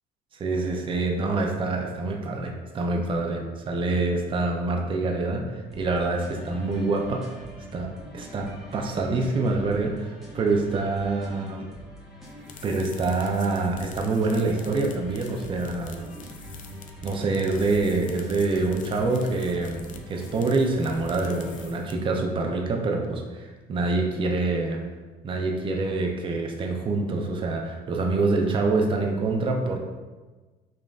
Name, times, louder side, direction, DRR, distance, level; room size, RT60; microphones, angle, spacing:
voice 1, 0.4-7.3 7.7-11.7 12.6-16.0 17.0-24.8 25.2-29.8, right 3 dB, 30° right, 2 dB, 0.5 m, -26 dB
sound 1, 5.7-21.7, equal, ahead, 0.9 m, -43 dB
sound 2, 12.2-22.2, left 6 dB, 50° left, 0.4 m, -48 dB
5.1 x 2.5 x 2.3 m, 1.3 s
cardioid pair, 110°, 17 cm